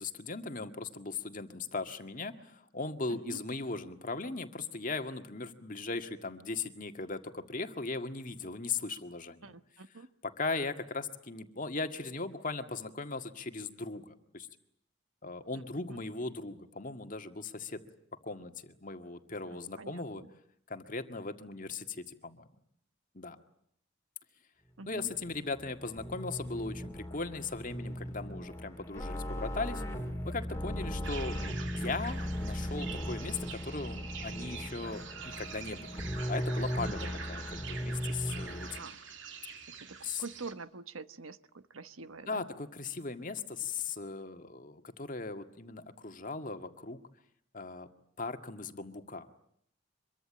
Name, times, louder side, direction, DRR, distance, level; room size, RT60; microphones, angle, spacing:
voice 1, 0.0-9.6 10.2-14.5 15.2-17.8 18.2-20.2 20.7-22.5 23.1-23.4 24.9-29.8 30.3-31.4 31.8-36.0 36.3-38.8 40.0-40.2 42.3-47.0 47.5-47.9 48.2-49.3, left 3 dB, 40° left, 7 dB, 1.8 m, -38 dB
voice 2, 3.1-3.4 9.4-10.1 15.5-15.6 15.9-16.0 19.5-20.3 24.8-25.1 36.9-37.2 38.8-39.0 39.7-42.4, right 3 dB, 90° right, 12 dB, 1.2 m, -46 dB
sound 1, 24.9-38.8, equal, 15° left, 2.6 m, -37 dB
sound 2, 31.0-40.5, right 6 dB, 65° right, 2.7 m, -46 dB
25.0 x 23.0 x 8.9 m, 0.71 s
head